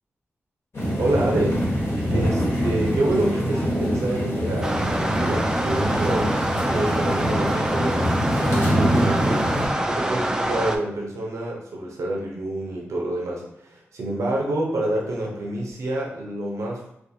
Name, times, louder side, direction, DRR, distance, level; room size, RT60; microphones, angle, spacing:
sound 1, 0.7-9.7, equal, 55° left, 1.2 m, -24 dB
voice 1, 0.9-1.6 2.1-16.9, right 1 dB, 85° right, -1 dB, 0.6 m, -27 dB
sound 2, 4.6-10.8, right 1 dB, 15° right, 0.3 m, -26 dB
2.5 x 2.4 x 2.6 m, 0.78 s
cardioid pair, 50°, 5 cm